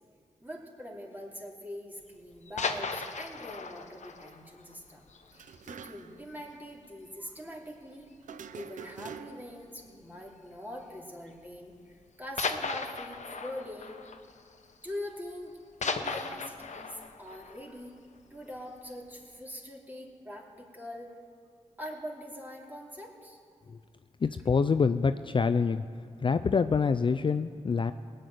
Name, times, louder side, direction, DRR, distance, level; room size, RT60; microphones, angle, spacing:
voice 1, 0.4-5.1 5.3-8.1 8.5-14.0 14.8-17.9 18.3-21.1 21.8-23.4, left 1 dB, 15° right, -1 dB, 2.9 m, -43 dB
sound 1, 2.3-5.9 6.2-6.3 6.7-6.9 7.2-7.3 8.1-8.6 9.8-10.0 10.9-11.0 12.4-15.2 15.4-18.6 19.0-19.1, left 4 dB, 65° left, 1.0 m, -37 dB
sound 2, 5.3-6.3 6.5-6.6 8.2-9.6, right 7 dB, 85° right, 0.5 m, -45 dB
voice 2, 24.2-25.8 26.2-27.9, left 5 dB, 40° left, 11 dB, 0.4 m, -26 dB
18.5 x 6.6 x 9.3 m, 2.1 s
cardioid pair, 55°, 13 cm